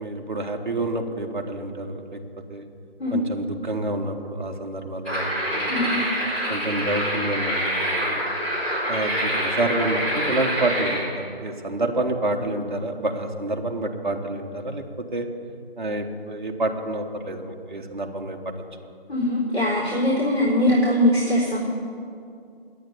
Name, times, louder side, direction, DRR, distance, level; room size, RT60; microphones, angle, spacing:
voice 1, 0.0-2.2 2.5-2.7 3.1-6.0 6.5-7.8 8.0-8.1 8.9-15.3 15.8-18.5, right 2 dB, 50° right, 3 dB, 1.3 m, -28 dB
sound 1, 5.0-11.0, equal, 5° left, 4.0 m, -26 dB
voice 2, 19.1-21.6, left 1 dB, 75° left, -6 dB, 3.9 m, -21 dB
9.6 x 9.2 x 9.8 m, 2.4 s
figure-of-eight pair, 155°, 30 cm